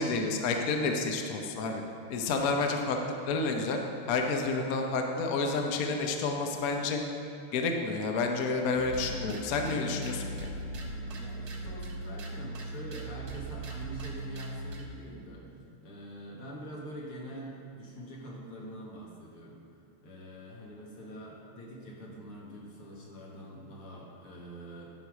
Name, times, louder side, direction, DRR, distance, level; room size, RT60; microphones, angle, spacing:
voice 1, 0.0-1.8 2.1-3.0 3.3-3.8 4.1-7.0 7.5-10.5, left 3 dB, 60° left, 3 dB, 0.9 m, -30 dB
sound 1, 8.7-14.9, right 2 dB, 55° right, 1.4 m, -39 dB
voice 2, 10.8-15.5 15.8-19.6 20.0-24.9, right 1 dB, 75° left, -4 dB, 2.6 m, -45 dB
11.0 x 6.3 x 4.8 m, 2.7 s
omnidirectional pair, 2.4 m